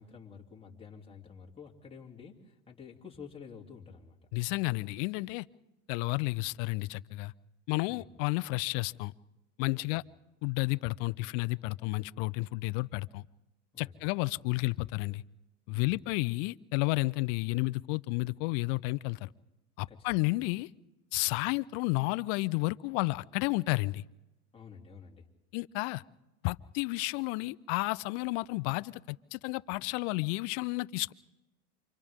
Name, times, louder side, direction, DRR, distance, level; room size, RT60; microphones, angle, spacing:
voice 1, 0.0-4.2 7.9-8.1 9.7-10.0 13.7-14.1 15.7-16.0 19.9-20.1 24.5-25.3, left 6 dB, 15° left, -2 dB, 3.2 m, -50 dB
voice 2, 4.3-5.4 5.9-7.3 7.7-9.1 9.6-10.0 10.4-13.2 13.8-15.2 15.7-19.3 19.8-20.7 21.1-24.0 25.5-26.0 26.4-31.1, left 23 dB, 55° left, 17 dB, 0.8 m, -31 dB
29.0 x 26.0 x 3.7 m, 0.98 s
supercardioid pair, 115°, 43 cm